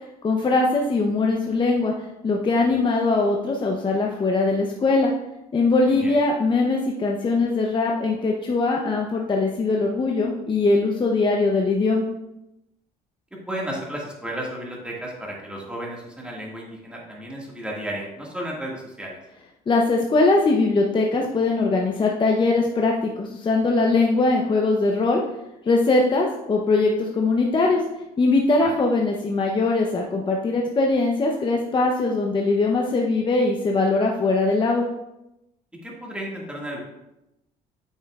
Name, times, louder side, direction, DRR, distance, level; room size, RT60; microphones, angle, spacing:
voice 1, 0.2-1.9 2.2-5.1 5.5-12.1 19.7-25.2 25.7-27.8 28.2-34.9, left 3 dB, 30° left, 0 dB, 0.7 m, -21 dB
voice 2, 13.5-19.2 28.6-28.7 35.8-36.8, right 1 dB, 5° right, -3 dB, 1.8 m, -33 dB
8.5 x 5.6 x 2.3 m, 0.91 s
cardioid pair, 110°, 17 cm